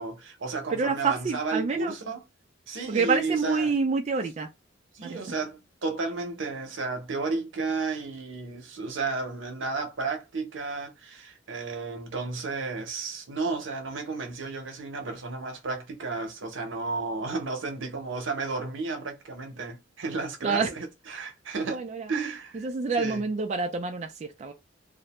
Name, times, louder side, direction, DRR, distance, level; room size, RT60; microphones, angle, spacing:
voice 1, 0.0-2.2 2.7-3.7 4.9-21.8 22.1-22.7 23.0-23.2, right 3 dB, 85° right, 0.8 m, -33 dB
voice 2, 0.7-1.9 2.9-4.5 5.0-5.2 20.4-20.7 21.7-22.1 22.5-24.5, right 4 dB, 35° right, 0.3 m, -27 dB
2.4 x 2.1 x 2.8 m
head